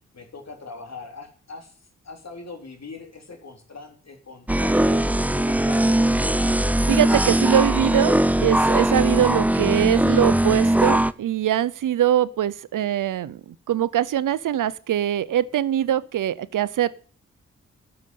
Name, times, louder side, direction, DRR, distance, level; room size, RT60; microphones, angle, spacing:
voice 1, 0.1-1.7 2.0-6.0, left 4 dB, 60° left, 4 dB, 3.6 m, -41 dB
sound 1, 4.5-11.1, right 1 dB, 5° right, 0.6 m, -20 dB
voice 2, 6.9-16.9, right 11 dB, 90° right, 17 dB, 0.7 m, -23 dB
12.0 x 6.9 x 9.3 m, 0.42 s
cardioid pair, 50°, 31 cm